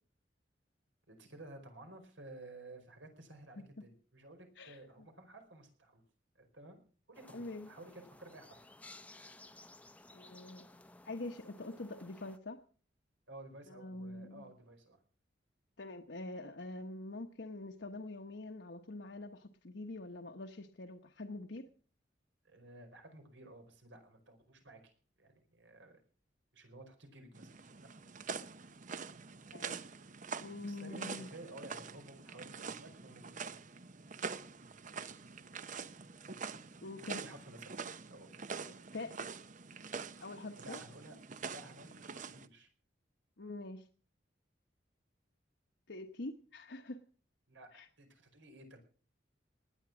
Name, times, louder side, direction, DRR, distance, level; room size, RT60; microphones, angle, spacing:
voice 1, 1.1-6.0 6.4-6.8 7.1-8.6 13.3-15.0 22.4-24.9 25.2-26.0 26.5-27.5 30.6-33.6 37.1-37.8 38.1-38.3 40.6-41.2 41.5-42.7 47.5-47.7 48.0-48.8, right 2 dB, 90° right, 5 dB, 4.9 m, -54 dB
sound 1, 7.1-12.4, left 2 dB, 10° left, 0.7 m, -57 dB
voice 2, 7.3-7.7 10.1-10.6 11.0-12.6 13.7-14.5 15.8-21.6 29.5-29.8 30.4-31.3 36.8-37.2 38.9-39.3 40.2-40.8 43.4-43.9 45.9-47.0 47.7-47.9, left 2 dB, 65° left, 4 dB, 1.1 m, -45 dB
sound 2, 27.3-42.5, right 5 dB, 45° right, 0.8 m, -45 dB
19.5 x 9.8 x 6.1 m, 0.42 s
head